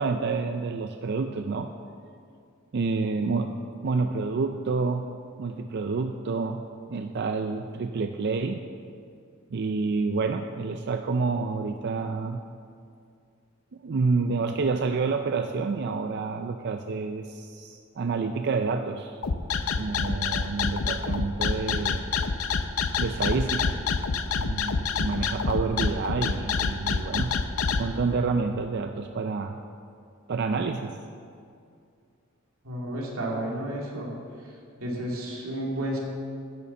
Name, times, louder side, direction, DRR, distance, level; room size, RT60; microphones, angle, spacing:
voice 1, 0.0-1.7 2.7-5.1 5.4-6.6 6.9-8.6 9.5-12.4 13.8-19.2 19.8-22.1 23.0-23.8 24.4-27.4 27.8-29.6 30.3-31.0, right 4 dB, 50° right, 6 dB, 0.4 m, -28 dB
sound 1, 19.2-27.8, left 5 dB, 85° left, 0.6 m, -26 dB
voice 2, 32.6-34.1 34.4-34.5 34.8-36.0, right 1 dB, 90° right, -2 dB, 2.5 m, -31 dB
10.5 x 6.9 x 7.3 m, 2.4 s
head